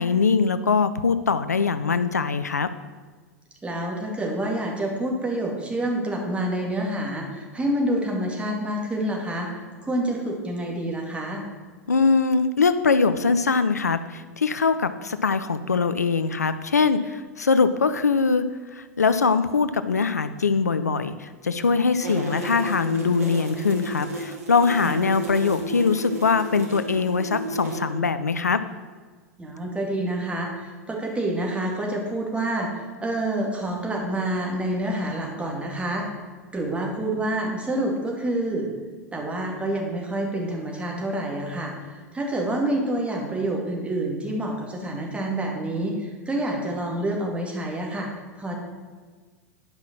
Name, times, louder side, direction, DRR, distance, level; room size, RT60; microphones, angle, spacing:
voice 1, 0.0-2.7 11.9-18.4 18.7-28.6, left 5 dB, 85° left, 12 dB, 0.5 m, -22 dB
voice 2, 3.6-9.5 9.8-11.4 24.8-25.0 29.4-36.1 36.5-38.7 39.1-48.1 48.3-48.6, right 1 dB, 15° right, 0 dB, 2.4 m, -27 dB
sound 1, 22.0-27.8, right 2 dB, 70° right, 2.1 m, -33 dB
10.5 x 5.6 x 6.1 m, 1.5 s
figure-of-eight pair, 90°, 9 cm